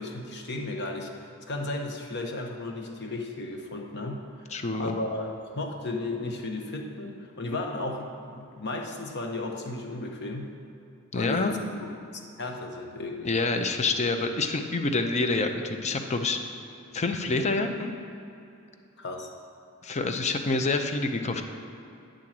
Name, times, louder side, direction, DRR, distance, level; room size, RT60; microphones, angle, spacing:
voice 1, 0.0-4.2 4.7-10.5 11.1-13.3 19.0-19.3, left 2 dB, 55° left, 2 dB, 0.9 m, -34 dB
voice 2, 4.5-4.9 11.1-11.5 13.2-16.4 16.9-17.9 19.8-21.4, left 3 dB, 30° left, 6 dB, 0.5 m, -27 dB
10.0 x 3.8 x 7.3 m, 2.8 s
head